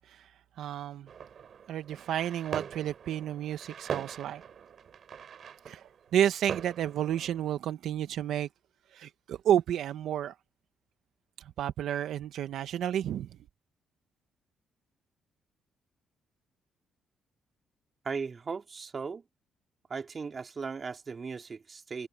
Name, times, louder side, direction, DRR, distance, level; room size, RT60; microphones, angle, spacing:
voice 1, 0.0-1.1 1.7-4.4 5.7-5.8 6.1-8.5 8.9-10.3 11.4-13.3, right 10 dB, 75° right, 0.8 m, -31 dB
sound 1, 1.1-7.5, right 7 dB, 55° right, 2.9 m, -42 dB
voice 2, 18.0-19.2 19.9-22.1, right 5 dB, 40° right, 2.7 m, -37 dB
cardioid pair, 90°, 0 cm